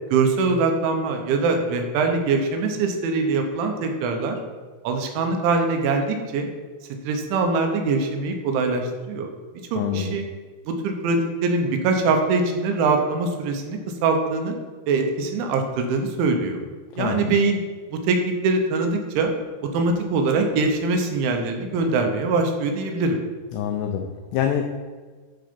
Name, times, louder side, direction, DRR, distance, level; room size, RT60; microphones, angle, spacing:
voice 1, 0.1-4.4 4.8-6.5 7.0-9.3 9.7-10.2 10.7-14.5 14.9-16.6 17.0-17.6 17.9-19.3 19.7-23.2, right 3 dB, 80° right, 4 dB, 3.2 m, -23 dB
voice 2, 9.8-10.2 17.0-17.4 23.5-24.6, left 9 dB, 90° left, 4 dB, 2.4 m, -26 dB
11.5 x 3.9 x 5.2 m, 1.4 s
omnidirectional pair, 5.6 m